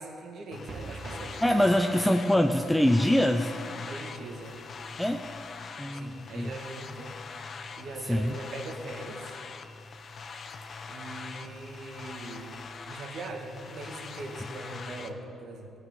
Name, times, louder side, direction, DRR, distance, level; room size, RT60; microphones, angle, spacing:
voice 1, 0.0-1.7 3.9-4.6 5.9-7.1 7.8-9.3 10.9-12.6 12.9-15.7, right 2 dB, 65° right, 2 dB, 1.9 m, -41 dB
sound 1, 0.5-15.1, left 4 dB, 50° left, 0.9 m, -42 dB
sound 2, 0.7-7.1 7.4-7.5 7.8-7.9, right 3 dB, 50° right, 0.9 m, -48 dB
voice 2, 1.4-3.5 5.0-5.2 5.8-6.5 8.0-8.4, left 1 dB, 5° left, 5 dB, 0.5 m, -24 dB
16.0 x 6.4 x 9.3 m, 2.6 s
cardioid pair, 90°, 0 cm